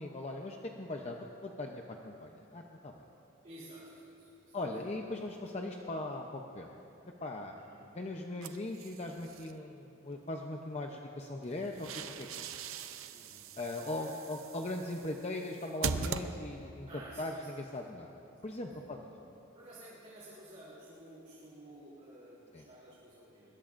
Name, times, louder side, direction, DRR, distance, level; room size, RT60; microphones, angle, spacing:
voice 1, 0.0-3.0 4.5-6.7 7.2-11.9 12.2-12.5 13.6-16.9 17.2-18.1 18.4-19.0 19.2-19.4 22.5-22.6, left 2 dB, 30° left, 1 dB, 0.7 m, -40 dB
voice 2, 3.4-4.6 7.5-7.8 13.0-13.5 13.9-14.5 16.9-17.6 18.7-18.8 19.5-23.5, right 1 dB, 35° right, -9 dB, 3.4 m, -53 dB
sound 1, 8.4-9.5 11.4-16.8, right 5 dB, 75° right, 0.7 m, -41 dB
24.0 x 21.5 x 2.6 m, 2.9 s
head